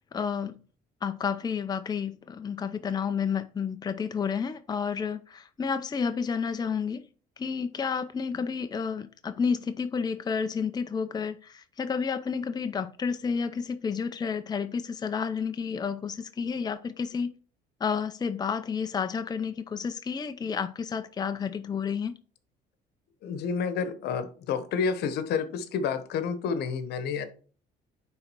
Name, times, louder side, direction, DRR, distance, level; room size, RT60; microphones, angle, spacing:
voice 1, 0.1-0.6 1.0-7.0 7.4-17.3 17.8-22.1, left 6 dB, 25° left, 0.6 m, -30 dB
voice 2, 23.2-27.2, left 6 dB, 75° left, 1.2 m, -29 dB
9.7 x 3.9 x 4.6 m
cardioid pair, 110°, 17 cm